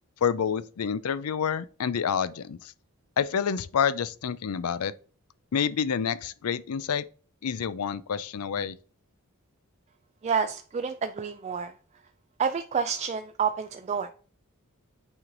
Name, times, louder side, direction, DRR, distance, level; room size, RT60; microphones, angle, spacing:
voice 1, 0.2-2.7 3.2-4.9 5.5-7.1 7.4-8.7, left 7 dB, 90° left, 0.5 m, -28 dB
voice 2, 10.2-11.7 12.4-14.1, right 6 dB, 30° right, 0.3 m, -29 dB
9.0 x 3.1 x 3.8 m
head